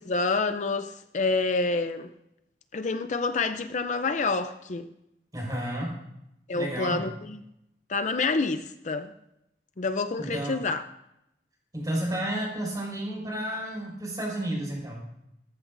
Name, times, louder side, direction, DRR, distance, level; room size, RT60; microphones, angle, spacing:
voice 1, 0.0-2.1 2.7-4.9 6.5-7.4 7.9-9.1 9.8-10.8, left 3 dB, 45° left, 9 dB, 0.5 m, -28 dB
voice 2, 5.3-6.0 6.5-7.1 10.2-10.6 11.7-15.0, right 1 dB, 20° right, -2 dB, 5.1 m, -31 dB
18.0 x 14.0 x 2.6 m, 0.84 s
head